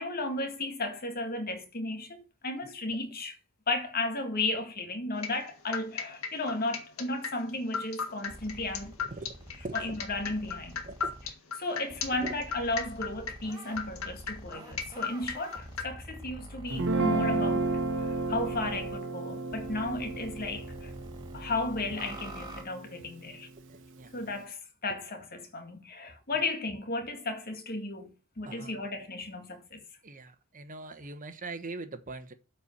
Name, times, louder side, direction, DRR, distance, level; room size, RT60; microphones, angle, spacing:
voice 1, 0.0-3.4 3.7-9.0 9.7-10.8 11.6-17.7 18.0-20.9 21.3-23.5 24.1-29.8, left 2 dB, 45° left, 2.0 m, -34 dB
sound 1, 5.2-15.8, left 6 dB, 80° left, 1.6 m, -35 dB
sound 2, 8.3-11.3 11.9-19.0 19.5-22.6, right 1 dB, 20° right, 2.3 m, -46 dB
voice 2, 9.0-9.3 9.6-9.9 10.9-11.1 12.2-12.3 23.7-24.1 28.4-28.9 30.0-32.3, right 3 dB, 40° right, 1.2 m, -42 dB
Guitar, 16.7-23.0, right 2 dB, 60° right, 1.4 m, -32 dB
8.5 x 4.7 x 7.4 m
head